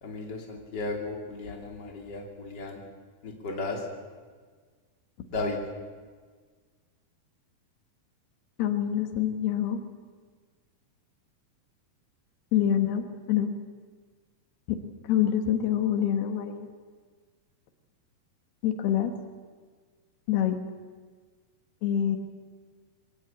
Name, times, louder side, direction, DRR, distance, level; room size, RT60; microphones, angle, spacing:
voice 1, 0.0-2.8 3.2-3.8 5.3-5.6, left 3 dB, 30° left, 1 dB, 3.3 m, -34 dB
voice 2, 8.6-9.8 12.5-13.5 14.7-14.8 15.1-16.7 18.6-19.1 20.3-20.6 21.8-22.2, left 10 dB, 85° left, 7 dB, 3.3 m, -26 dB
22.0 x 17.5 x 8.9 m, 1.5 s
omnidirectional pair, 4.5 m